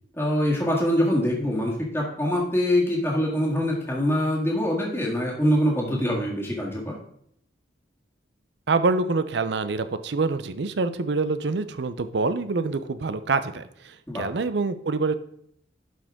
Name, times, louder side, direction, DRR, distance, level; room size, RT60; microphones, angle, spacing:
voice 1, 0.2-7.0 14.1-14.3, equal, 10° left, -4 dB, 1.8 m, -24 dB
voice 2, 8.7-15.1, right 3 dB, 70° right, 12 dB, 0.6 m, -26 dB
11.0 x 5.1 x 3.6 m, 0.69 s
head